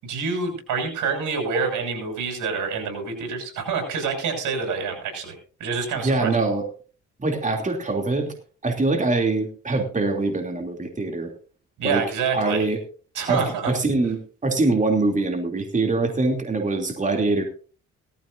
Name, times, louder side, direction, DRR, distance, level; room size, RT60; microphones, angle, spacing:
voice 1, 0.0-6.3 11.8-12.6 13.1-13.7, right 5 dB, 80° right, 4 dB, 7.1 m, -27 dB
voice 2, 5.9-6.6 7.2-8.3 8.6-11.3 11.8-12.0 12.3-12.8 13.3-17.4, right 3 dB, 25° right, 3 dB, 3.0 m, -23 dB
18.0 x 14.5 x 2.7 m, 0.39 s
cardioid pair, 90°, 30 cm